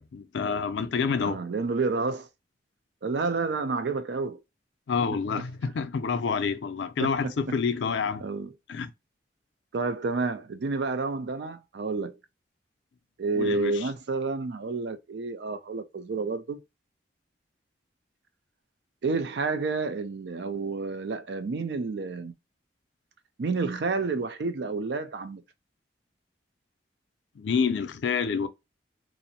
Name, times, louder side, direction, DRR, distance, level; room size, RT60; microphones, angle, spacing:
voice 1, 0.0-1.5 4.9-8.2 8.7-8.9 13.4-13.9 27.4-28.5, left 5 dB, 85° left, 0.4 m, -28 dB
voice 2, 1.2-2.3 3.0-4.4 7.0-7.1 8.2-8.5 9.7-12.2 13.2-16.6 19.0-22.3 23.4-25.4, right 4 dB, 70° right, 0.4 m, -29 dB
2.5 x 2.0 x 2.6 m
head